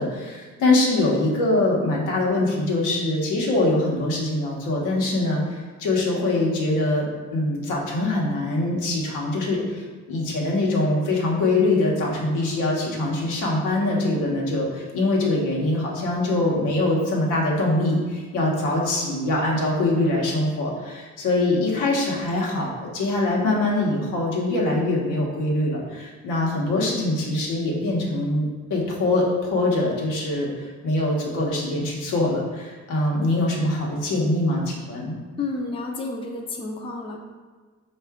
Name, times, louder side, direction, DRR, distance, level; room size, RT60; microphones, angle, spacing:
voice 1, 0.0-7.0 7.3-35.1, left 2 dB, 85° left, -3 dB, 1.0 m, -23 dB
voice 2, 35.4-37.2, left 3 dB, 20° left, 1 dB, 0.4 m, -30 dB
4.5 x 2.5 x 3.5 m, 1.4 s
cardioid pair, 90°, 30 cm